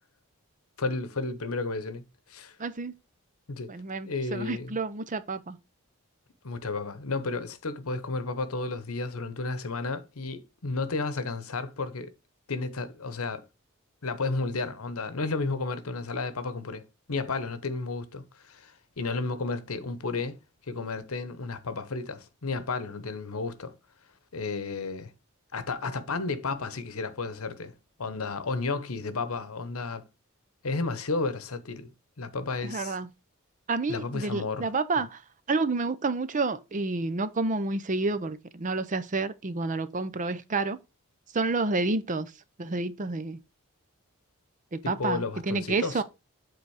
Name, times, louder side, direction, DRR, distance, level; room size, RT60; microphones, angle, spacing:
voice 1, 0.8-2.0 2.3-2.6 3.5-3.7 4.0-4.8 6.4-12.1 12.5-13.4 14.0-20.4 20.7-23.7 24.3-25.1 25.5-27.7 28.0-30.1 30.6-31.9 32.2-33.0 33.9-35.0 44.8-46.0, left 3 dB, 80° left, 1.0 m, -32 dB
voice 2, 2.6-2.9 3.7-5.6 32.6-33.1 33.7-35.2 35.5-40.8 41.3-42.3 42.6-43.4 44.7-46.0, right 3 dB, 35° right, 0.6 m, -29 dB
8.1 x 4.0 x 4.8 m
head